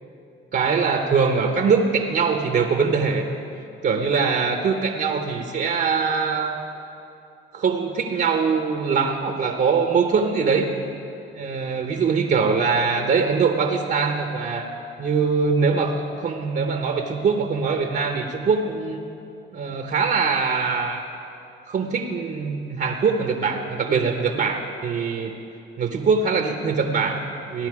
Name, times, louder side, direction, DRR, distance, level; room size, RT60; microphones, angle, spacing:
voice 1, 0.5-3.3 3.8-6.5 7.5-10.7 11.3-14.7 15.0-19.0 19.5-21.0 21.7-25.3 25.8-27.7, right 5 dB, 55° right, 4 dB, 1.0 m, -22 dB
16.0 x 10.5 x 4.9 m, 2.7 s
cardioid pair, 90°, 20 cm